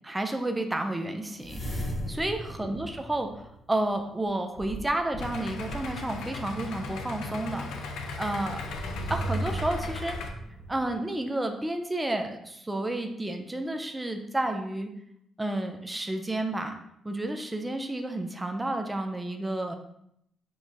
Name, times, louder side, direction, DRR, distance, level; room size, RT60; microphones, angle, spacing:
voice 1, 0.0-8.6 9.1-10.2 10.7-14.9 15.4-19.7, right 1 dB, 10° right, 5 dB, 0.5 m, -31 dB
sound 1, 1.4-3.9 4.6-6.1 6.8-6.9 8.4-10.9, right 1 dB, 30° left, 1.2 m, -36 dB
Idling, 5.2-10.3, left 3 dB, 80° left, 0.5 m, -37 dB
6.1 x 2.3 x 2.7 m, 0.74 s
cardioid pair, 90°, 0 cm